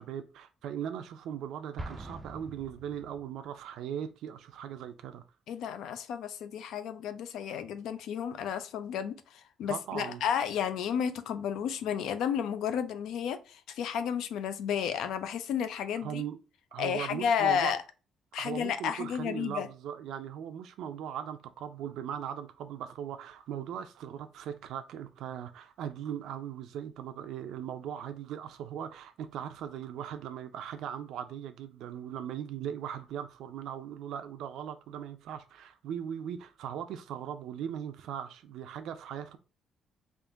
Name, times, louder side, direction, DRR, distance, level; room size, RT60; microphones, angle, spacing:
voice 1, 0.0-5.2 9.7-10.2 16.0-16.4 16.7-17.7 18.4-39.4, right 9 dB, 85° right, 0.4 m, -39 dB
Explosion, 1.8-3.5, right 2 dB, 15° right, 0.3 m, -44 dB
voice 2, 5.5-9.2 9.6-16.2 16.8-17.8 18.3-19.7, left 8 dB, 90° left, 0.4 m, -32 dB
3.6 x 2.5 x 3.7 m
cardioid pair, 180°, 0 cm